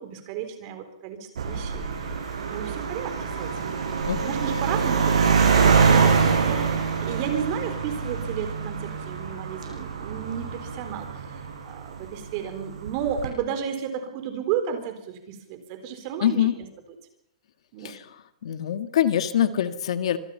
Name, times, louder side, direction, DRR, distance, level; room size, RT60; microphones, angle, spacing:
voice 1, 0.0-3.8 4.2-16.7 17.7-17.9, right 8 dB, 35° right, 8 dB, 4.1 m, -33 dB
sound 1, 1.4-12.1 12.9-13.3, right 5 dB, 85° right, 7.8 m, -24 dB
voice 2, 16.2-16.5 17.8-18.0 18.4-20.2, left 10 dB, 65° left, 10 dB, 1.7 m, -23 dB
26.0 x 22.0 x 5.7 m, 0.79 s
hypercardioid pair, 160°, 3 cm